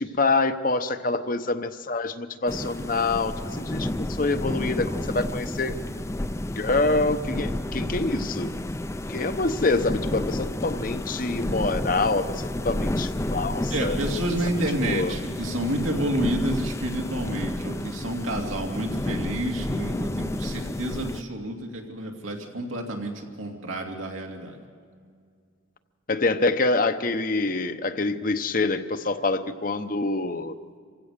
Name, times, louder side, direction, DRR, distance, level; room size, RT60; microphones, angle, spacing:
voice 1, 0.0-5.8 6.6-8.5 9.1-14.0 14.8-15.1 26.1-30.5, left 3 dB, 40° left, 10 dB, 0.8 m, -26 dB
sound 1, 2.5-21.2, left 1 dB, 15° left, 0.5 m, -31 dB
voice 2, 13.7-24.6, right 1 dB, 85° right, 1 dB, 2.8 m, -30 dB
26.5 x 16.0 x 6.7 m, 2.2 s
head